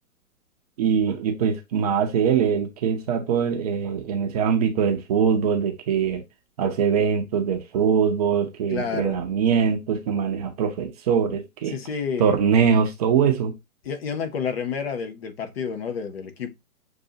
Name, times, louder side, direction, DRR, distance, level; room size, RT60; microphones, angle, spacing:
voice 1, 0.8-6.2 6.6-11.7 12.2-13.5, right 7 dB, 25° right, 0.7 m, -22 dB
voice 2, 8.7-9.2 11.7-12.3 13.8-16.6, left 6 dB, 45° left, 0.9 m, -30 dB
6.6 x 2.6 x 2.8 m
figure-of-eight pair, 125°, 44 cm